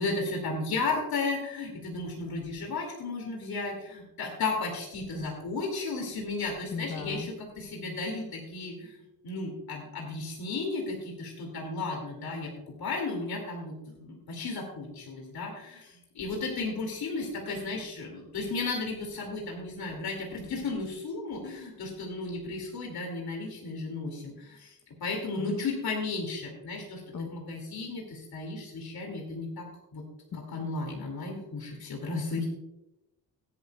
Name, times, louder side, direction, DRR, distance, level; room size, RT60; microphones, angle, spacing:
voice 1, 0.0-9.0 9.2-12.5 12.8-29.7 29.9-30.0 30.3-32.5, left 3 dB, 90° left, 0 dB, 2.6 m, -34 dB
voice 2, 6.7-7.3 25.4-25.6 27.1-27.3, left 6 dB, 60° left, 5 dB, 1.0 m, -36 dB
17.5 x 10.5 x 2.3 m, 0.93 s
cardioid pair, 105°, 36 cm